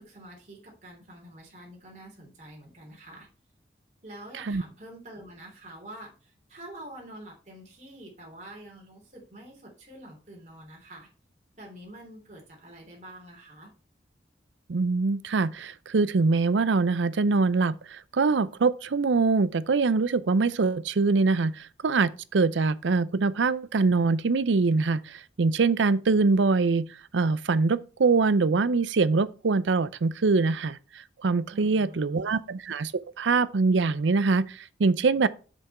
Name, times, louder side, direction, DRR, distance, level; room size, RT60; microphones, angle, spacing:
voice 1, 0.0-3.3 4.0-11.1 11.5-13.7 31.5-32.3, right 1 dB, 40° right, 3.3 m, -47 dB
voice 2, 14.7-26.9 27.1-32.9 33.2-35.3, right 4 dB, 90° right, 0.5 m, -24 dB
6.8 x 5.9 x 4.3 m
head